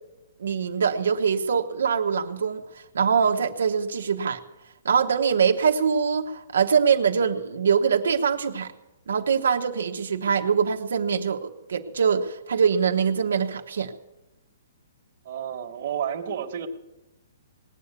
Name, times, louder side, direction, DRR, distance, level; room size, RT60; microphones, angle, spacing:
voice 1, 0.4-2.6 2.9-4.4 4.8-8.7 9.1-13.9, right 6 dB, 90° right, 4 dB, 1.0 m, -23 dB
voice 2, 15.2-16.7, right 9 dB, 45° right, 3 dB, 1.4 m, -31 dB
19.5 x 8.3 x 8.2 m, 1.0 s
hypercardioid pair, 170°, 0 cm